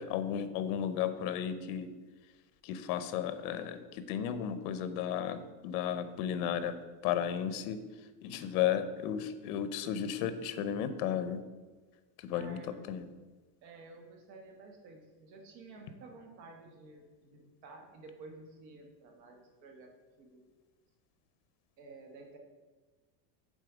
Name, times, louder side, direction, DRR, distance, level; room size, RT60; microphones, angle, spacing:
voice 1, 0.0-1.9 2.6-6.7 7.0-7.8 8.2-11.4 12.2-12.6 12.9-13.0, left 9 dB, 65° left, 11 dB, 0.7 m, -34 dB
voice 2, 12.3-13.1 13.6-19.9 20.2-20.4 21.8-22.4, right 3 dB, 85° right, 3 dB, 1.4 m, -52 dB
6.5 x 4.0 x 5.0 m, 1.3 s
cardioid pair, 160°, 49 cm